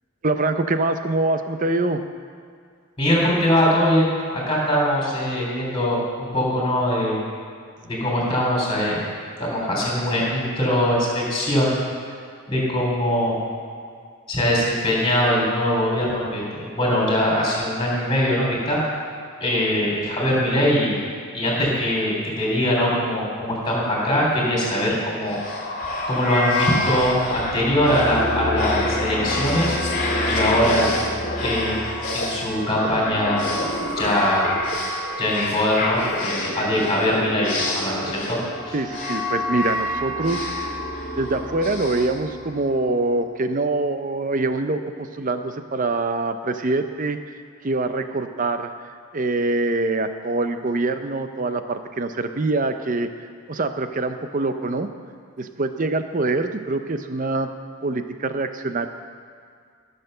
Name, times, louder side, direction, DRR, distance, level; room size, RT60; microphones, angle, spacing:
voice 1, 0.2-2.0 38.0-38.1 38.7-40.8 41.2-47.2 47.6-48.7 49.1-53.1 53.5-54.9 55.4-57.5 57.8-58.9, right 2 dB, 35° right, 8 dB, 0.6 m, -24 dB
voice 2, 3.0-7.2 7.8-9.1 9.4-11.7 12.5-13.4 14.3-18.8 19.4-21.0 21.3-25.4 26.1-29.7 30.3-30.9 31.4-31.8 32.1-33.5 34.0-34.5 35.2-38.4 38.6-38.8, equal, 20° left, -4 dB, 3.4 m, -22 dB
sound 1, 25.2-42.9, left 1 dB, 40° left, 2.1 m, -27 dB
14.5 x 6.8 x 6.7 m, 2.2 s
head